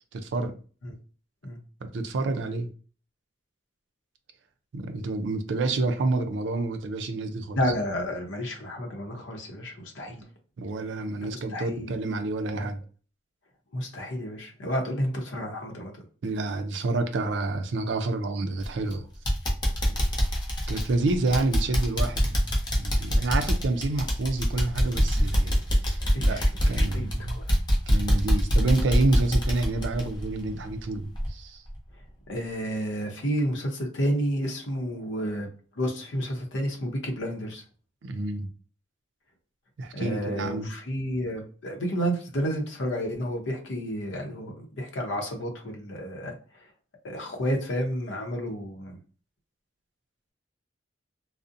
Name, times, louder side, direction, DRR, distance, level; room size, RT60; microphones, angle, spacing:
voice 1, 0.1-0.5 1.8-2.7 4.7-7.6 10.6-12.8 16.2-19.1 20.7-25.6 25.9-26.4 26.7-27.4 27.9-31.6 38.0-38.5 39.8-40.7, right 2 dB, 75° right, 0.4 m, -28 dB
voice 2, 7.6-10.2 11.2-11.9 12.5-12.7 13.7-15.9 19.8-20.0 23.1-23.2 26.0-27.4 32.3-35.5 35.7-37.6 39.9-46.7 47.0-49.0, equal, 85° left, 0.6 m, -31 dB
sound 1, 18.6-18.9 19.3-30.8 31.2-31.3 31.8-31.9, equal, 25° left, 0.6 m, -24 dB
2.5 x 2.0 x 2.4 m
head